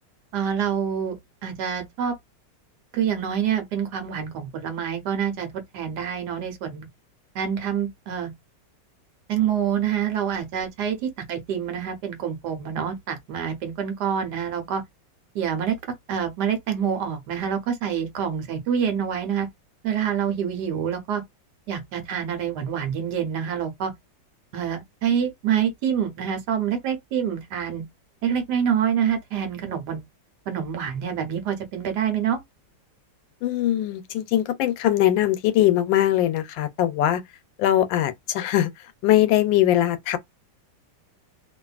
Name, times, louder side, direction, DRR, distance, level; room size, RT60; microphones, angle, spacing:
voice 1, 0.3-2.1 2.9-6.9 7.3-8.3 9.3-14.8 15.3-15.7 16.1-19.5 19.8-21.2 21.7-23.9 24.5-27.8 28.2-30.0 30.5-32.4, right 8 dB, 70° right, 1.3 m, -26 dB
voice 2, 33.4-37.2 37.6-38.7 39.0-40.2, left 12 dB, 90° left, 1.3 m, -21 dB
2.8 x 2.5 x 2.3 m
omnidirectional pair, 2.0 m